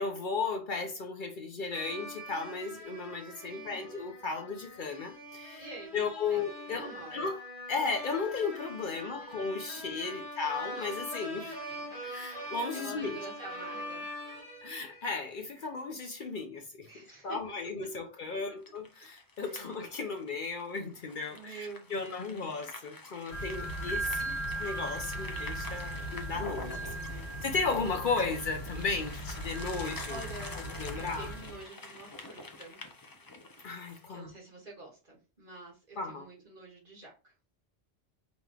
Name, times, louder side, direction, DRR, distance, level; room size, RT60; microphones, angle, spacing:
voice 1, 0.0-5.7 5.9-7.4 7.7-11.6 12.0-13.2 14.6-16.9 17.2-26.9 27.4-30.2 30.5-31.3 33.6-34.3 36.0-36.3, left 4 dB, 55° left, 0.7 m, -35 dB
sound 1, 1.7-15.4, equal, 85° right, 2.2 m, -43 dB
voice 2, 3.5-3.9 5.6-6.4 6.7-7.2 8.9-9.3 11.7-11.9 12.7-14.1 16.9-17.4 19.3-19.8 21.3-22.4 26.6-27.3 30.1-32.8 34.1-37.3, right 2 dB, 55° right, 1.9 m, -48 dB
sound 2, 18.6-34.1, left 2 dB, 30° left, 0.4 m, -47 dB
sound 3, 23.3-31.6, right 1 dB, 80° left, 1.8 m, -38 dB
5.3 x 3.0 x 2.3 m
omnidirectional pair, 1.1 m